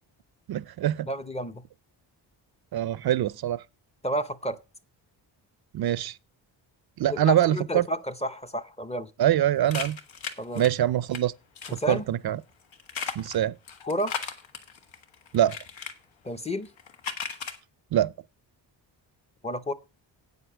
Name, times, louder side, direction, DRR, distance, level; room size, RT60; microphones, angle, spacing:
voice 1, 0.5-1.1 2.7-3.6 5.7-6.2 7.0-7.9 9.2-10.0 10.6-11.3 11.7-12.4 13.2-13.5 15.3-15.6 17.9-18.1, right 12 dB, 55° right, 0.5 m, -24 dB
voice 2, 1.0-1.6 4.0-4.6 7.1-9.1 10.4-10.6 11.7-12.0 13.8-14.1 16.2-16.7 19.4-19.7, equal, 15° left, 0.6 m, -30 dB
sound 1, 9.7-11.2 11.6-11.9 12.7-15.9 16.6-17.6, left 6 dB, 90° left, 1.5 m, -36 dB
8.6 x 7.9 x 6.0 m
wide cardioid pair, 120°, 45 cm